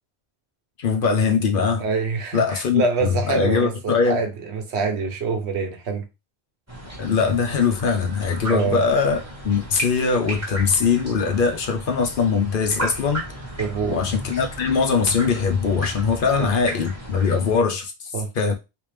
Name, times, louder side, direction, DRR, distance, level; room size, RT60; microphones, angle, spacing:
voice 1, 0.8-1.8 2.3-4.2 7.0-13.3 13.9-17.9 18.4-18.5, left 5 dB, 60° left, 0.9 m, -21 dB
voice 2, 1.8-6.1 8.5-8.8 13.6-14.0 16.4-16.5 18.1-18.3, right 4 dB, 90° right, 1.1 m, -25 dB
sound 1, 6.7-17.6, right 1 dB, 15° right, 1.0 m, -35 dB
3.4 x 2.9 x 3.2 m
omnidirectional pair, 1.1 m